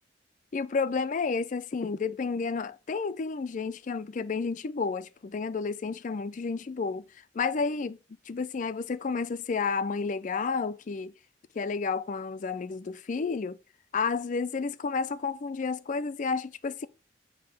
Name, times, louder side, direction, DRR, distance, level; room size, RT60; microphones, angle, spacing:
voice 1, 0.5-7.0 7.3-8.0 8.3-11.1 11.6-13.6 13.9-16.9, left 4 dB, 45° left, 0.4 m, -31 dB
7.5 x 2.8 x 5.2 m
head